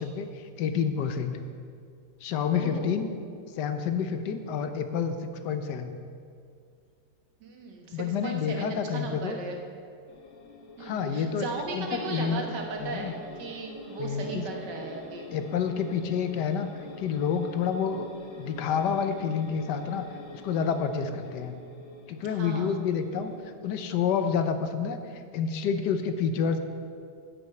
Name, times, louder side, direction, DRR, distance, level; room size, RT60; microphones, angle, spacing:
voice 1, 0.0-1.4 2.2-3.1 3.5-5.9 7.9-9.4 10.8-11.5 11.7-12.4 12.8-13.1 14.0-14.4 15.3-16.7 17.0-18.1 18.4-20.1 20.3-21.6 22.1-23.3 23.6-26.6, left 7 dB, 80° left, 8 dB, 1.4 m, -29 dB
voice 2, 2.5-3.0 7.4-9.6 10.8-15.3 22.3-22.8, right 3 dB, 85° right, 1 dB, 2.0 m, -36 dB
sound 1, 10.1-23.4, left 2 dB, 50° left, 1.3 m, -46 dB
10.5 x 6.4 x 7.9 m, 2.3 s
omnidirectional pair, 1.8 m